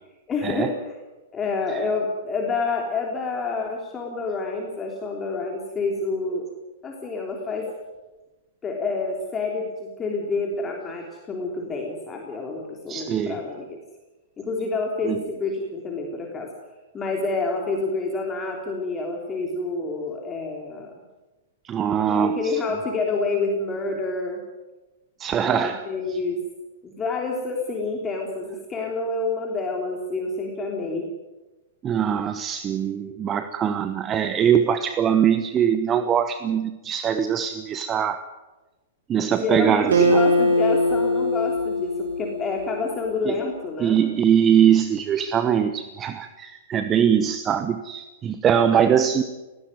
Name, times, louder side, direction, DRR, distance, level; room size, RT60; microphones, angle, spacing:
voice 1, 0.3-0.8 1.3-6.4 6.8-7.7 8.6-13.8 14.4-16.5 16.9-20.9 22.0-24.4 25.4-26.4 26.8-31.1 39.4-44.0, left 3 dB, 20° left, 1 dB, 3.4 m, -28 dB
voice 2, 12.9-13.4 15.0-15.2 21.6-22.5 25.2-25.8 31.8-38.2 39.1-40.2 43.3-43.4 43.8-49.2, right 8 dB, 25° right, 11 dB, 1.1 m, -22 dB
Acoustic guitar, 39.9-43.4, equal, 70° right, 3.9 m, -22 dB
19.5 x 16.5 x 9.4 m, 1.1 s
figure-of-eight pair, 105°, 0 cm